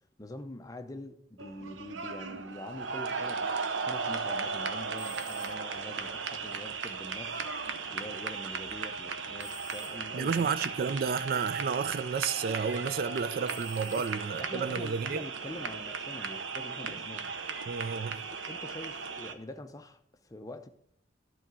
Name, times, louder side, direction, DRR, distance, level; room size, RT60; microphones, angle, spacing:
voice 1, 0.2-7.4 7.9-10.7 13.9-17.3 18.3-20.7, left 1 dB, 20° left, 0.6 m, -45 dB
sound 1, 1.4-19.3, right 5 dB, 80° right, 0.8 m, -36 dB
sound 2, 4.9-5.9 9.4-10.4 13.4-14.6, right 1 dB, 25° right, 3.3 m, -49 dB
voice 2, 10.1-15.2 17.7-18.2, right 6 dB, 50° right, 0.4 m, -31 dB
11.0 x 3.9 x 7.4 m
head